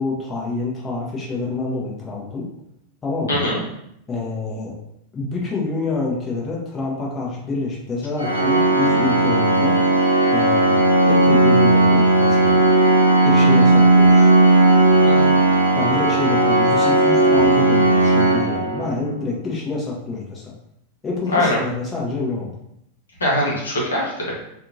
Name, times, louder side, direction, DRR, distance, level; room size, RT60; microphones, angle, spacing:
voice 1, 0.0-2.4 3.0-3.4 4.1-4.7 5.1-9.8 10.3-12.6 13.2-14.3 15.8-20.5 21.0-22.5, left 3 dB, 20° left, -4 dB, 0.7 m, -27 dB
voice 2, 3.3-3.6 15.0-15.3 21.3-21.6 23.2-24.3, left 1 dB, 70° left, -5 dB, 0.8 m, -22 dB
Organ, 8.2-19.1, right 2 dB, 75° right, 0.5 m, -15 dB
2.8 x 2.4 x 2.6 m, 0.78 s
figure-of-eight pair, 90°, 0 cm